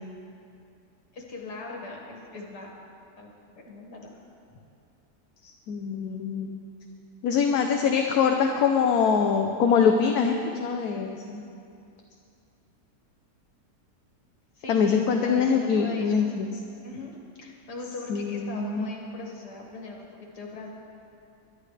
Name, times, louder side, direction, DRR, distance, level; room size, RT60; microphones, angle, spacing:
voice 1, 1.1-2.7 3.2-4.1 14.6-16.3 16.8-20.7, left 3 dB, 90° left, -1 dB, 2.5 m, -40 dB
voice 2, 5.7-6.5 7.2-11.4 14.7-16.5 18.1-18.9, left 6 dB, 70° left, 3 dB, 1.2 m, -24 dB
22.0 x 12.0 x 3.3 m, 2.5 s
omnidirectional pair, 1.7 m